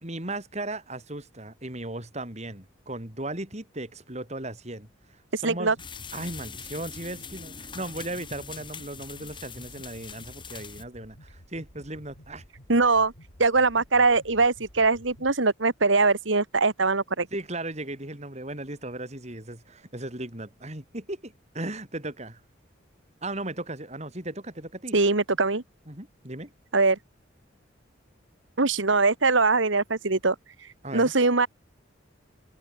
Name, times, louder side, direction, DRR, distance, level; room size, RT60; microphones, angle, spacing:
voice 1, 0.0-4.9 5.4-5.8 6.1-12.4 17.3-22.4 23.2-25.0 25.9-26.5 30.8-31.1, right 2 dB, 35° right, 3.9 m, -36 dB
voice 2, 5.3-5.8 12.7-13.1 13.4-17.3 24.9-25.6 26.7-27.0 28.6-30.4 30.9-31.5, right 3 dB, 70° right, 1.8 m, -22 dB
sound 1, 5.8-15.3, equal, 90° left, 5.2 m, -52 dB
sound 2, 5.8-10.8, left 6 dB, 25° left, 4.4 m, -42 dB
head